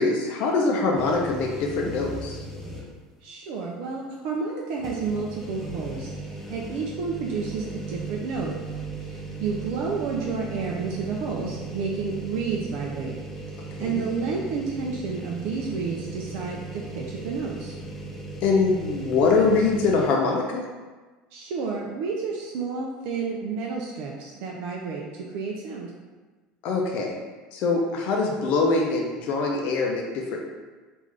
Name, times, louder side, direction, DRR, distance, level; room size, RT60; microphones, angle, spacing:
voice 1, 0.0-2.4 11.4-11.5 13.8-14.0 18.4-20.6 26.6-27.1 27.5-30.4, left 4 dB, 60° left, 0 dB, 0.5 m, -23 dB
sound 1, 1.0-3.1 3.5-3.6 4.8-20.1, right 2 dB, 10° left, 0.5 m, -37 dB
voice 2, 3.2-8.5 9.1-13.1 13.5-17.7 21.3-25.9, right 5 dB, 70° right, -2 dB, 0.4 m, -30 dB
3.6 x 2.5 x 3.2 m, 1.3 s
supercardioid pair, 130°, 3 cm